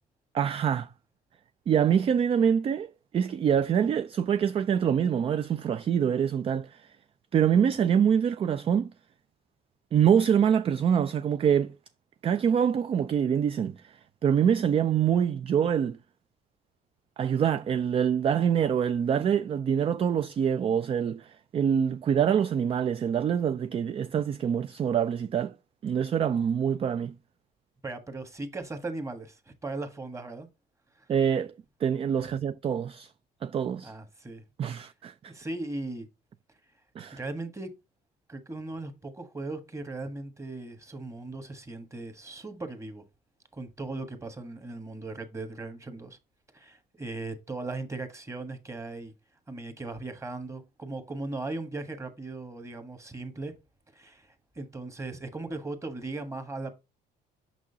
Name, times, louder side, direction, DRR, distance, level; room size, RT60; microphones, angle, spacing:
voice 1, 0.3-0.9 1.7-7.0 7.3-8.9 9.9-11.7 12.2-16.0 17.2-25.5 25.8-27.1 31.1-31.5 31.8-33.1 33.4-33.9 34.6-35.3 37.0-37.2, right 8 dB, 35° right, 0.3 m, -25 dB
voice 2, 27.8-30.5 31.0-31.1 32.2-32.3 33.8-34.4 35.3-36.1 37.1-37.7 38.3-43.0 43.5-46.2 46.5-49.1 49.5-53.5 53.9-56.8, right 2 dB, 15° right, 1.4 m, -38 dB
6.2 x 6.1 x 2.8 m
cardioid pair, 110°, 17 cm